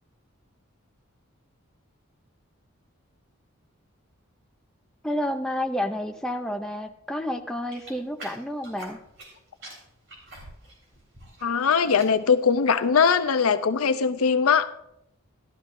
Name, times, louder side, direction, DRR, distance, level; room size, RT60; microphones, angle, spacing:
voice 1, 5.0-9.0, left 1 dB, 5° left, 4 dB, 0.5 m, -30 dB
sound 1, 7.7-9.3 9.6-11.5 11.7-12.2 12.7-13.0, right 1 dB, 60° right, 3.3 m, -45 dB
voice 2, 11.4-14.7, left 6 dB, 90° left, 10 dB, 0.6 m, -21 dB
13.0 x 12.0 x 2.6 m, 0.82 s
head